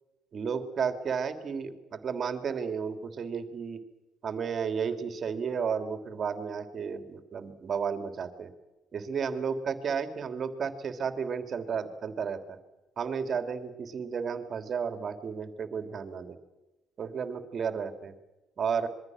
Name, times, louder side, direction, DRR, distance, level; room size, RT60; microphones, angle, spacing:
voice 1, 0.3-3.8 4.2-8.5 8.9-12.6 13.0-16.4 17.0-18.1 18.6-18.9, right 6 dB, 50° right, 8 dB, 3.1 m, -33 dB
26.5 x 23.0 x 6.5 m, 1.1 s
hypercardioid pair, 50°, 0 cm